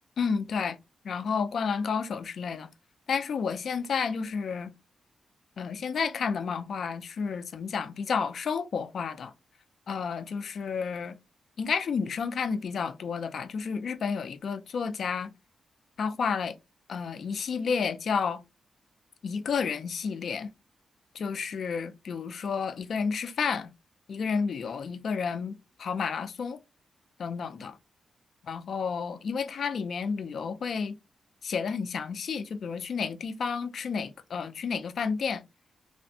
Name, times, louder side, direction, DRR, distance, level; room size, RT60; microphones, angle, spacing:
voice 1, 0.2-0.8 1.0-2.7 3.1-4.7 5.6-9.3 9.9-11.1 11.6-15.3 16.0-16.6 16.9-18.4 19.2-20.5 21.1-23.7 24.1-26.6 27.2-27.8 28.4-31.0 31.4-35.4, left 5 dB, 65° left, 0.3 m, -31 dB
3.2 x 2.1 x 2.7 m
wide cardioid pair, 120°, 0 cm